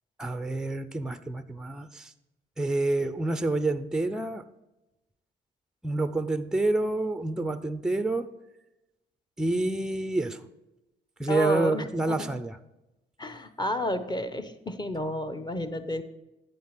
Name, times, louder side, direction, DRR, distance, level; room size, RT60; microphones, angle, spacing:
voice 1, 0.2-2.1 2.6-4.5 5.8-8.3 9.4-10.5 11.2-12.6, right 2 dB, 5° right, 0.5 m, -28 dB
voice 2, 11.3-12.3 13.2-16.0, left 1 dB, 20° left, 0.9 m, -31 dB
9.3 x 7.2 x 5.9 m
cardioid pair, 90°, 20 cm